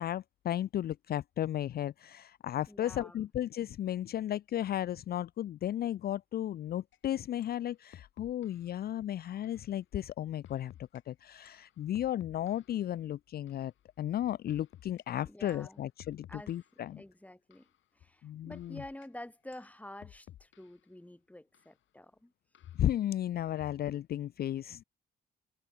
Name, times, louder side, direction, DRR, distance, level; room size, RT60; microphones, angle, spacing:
voice 1, 0.0-10.7 11.1-13.7 14.0-17.0 18.2-18.8 22.8-24.8, left 12 dB, 50° left, 0.4 m, -34 dB
voice 2, 2.7-3.2 15.2-15.8 16.3-16.5 16.9-17.7 17.9-22.3, left 1 dB, 5° left, 4.6 m, -49 dB
sound 1, 6.9-7.0 7.4-7.6 7.9-8.7 9.4-9.7 10.4-11.0 11.5-12.8 13.5-13.7 14.5-15.0 15.5-15.7 16.0-16.8 17.5-17.8 18.5-19.1 19.5-20.8 21.5-21.7 22.6-22.9, left 12 dB, 75° left, 7.7 m, -55 dB
cardioid pair, 90°, 20 cm